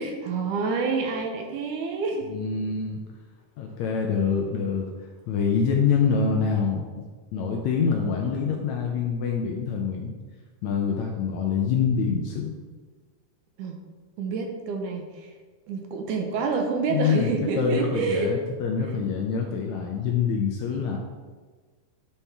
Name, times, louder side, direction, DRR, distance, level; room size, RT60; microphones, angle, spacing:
voice 1, 0.0-2.3 13.6-13.8 14.2-15.3 15.7-18.3, right 4 dB, 75° right, 3 dB, 2.0 m, -28 dB
voice 2, 2.3-3.0 3.6-4.9 5.3-6.9 7.3-10.1 10.6-12.6 16.9-21.0, left 6 dB, 85° left, 1 dB, 1.6 m, -25 dB
11.0 x 4.3 x 3.4 m, 1.4 s
omnidirectional pair, 4.0 m